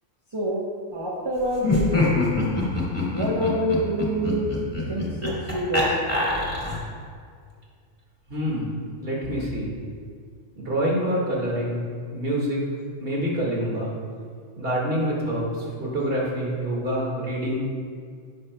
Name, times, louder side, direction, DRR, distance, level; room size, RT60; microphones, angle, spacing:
voice 1, 0.3-2.0 3.1-4.5 4.9-6.0, equal, 25° right, -5 dB, 1.0 m, -26 dB
Laughter, 1.6-7.0, left 2 dB, 10° left, 1.8 m, -25 dB
voice 2, 8.3-8.7 9.0-9.8 10.6-12.6 13.0-13.9 14.6-17.6, equal, 50° right, -4 dB, 2.1 m, -26 dB
17.0 x 6.3 x 2.2 m, 2.1 s
omnidirectional pair, 1.3 m